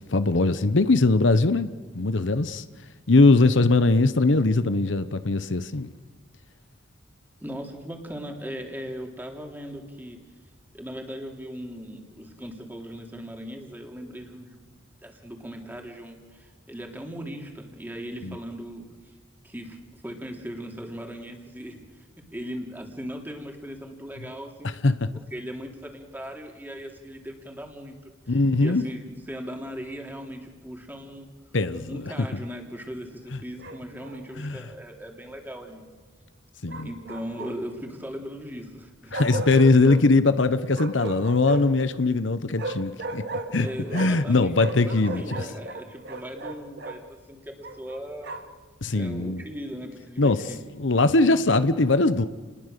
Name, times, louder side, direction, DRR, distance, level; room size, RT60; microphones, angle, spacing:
voice 1, 0.1-2.6 3.1-5.9 18.2-18.4 24.6-25.1 28.3-28.8 31.5-32.1 34.4-34.6 36.6-36.9 39.1-43.2 43.5-43.7 43.9-45.2 48.8-49.4 50.2-50.4 50.8-52.3, left 3 dB, 70° left, 0.9 m, -21 dB
voice 2, 7.4-10.2 10.7-14.7 15.0-19.1 19.4-24.7 25.3-28.0 28.3-31.3 31.9-35.8 36.8-39.2 43.6-48.3 48.9-50.6, equal, 10° right, 3.3 m, -38 dB
Bark, 33.6-34.2 36.7-37.8 39.1-40.0 40.7-41.8 42.6-44.3 44.5-47.0 47.6-48.6, right 2 dB, 60° right, 2.4 m, -35 dB
30.0 x 20.5 x 6.8 m
head